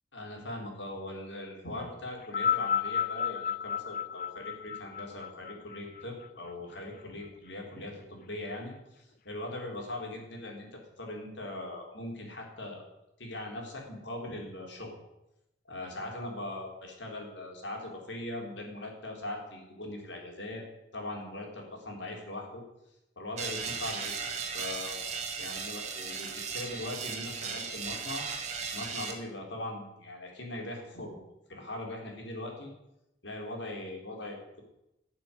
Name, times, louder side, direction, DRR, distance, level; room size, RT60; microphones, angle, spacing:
voice 1, 0.1-12.8 13.2-15.0 15.7-20.6 20.9-22.6 23.2-24.2 24.5-25.1 25.4-28.2 28.7-31.2 31.5-32.7 33.2-34.6, left 1 dB, 75° left, 1 dB, 3.9 m, -40 dB
sound 1, 2.2-6.7 7.6-7.7, left 8 dB, 45° left, 0.4 m, -32 dB
sound 2, 23.4-29.1, right 5 dB, 35° right, 2.0 m, -36 dB
13.5 x 6.7 x 9.7 m, 0.89 s
head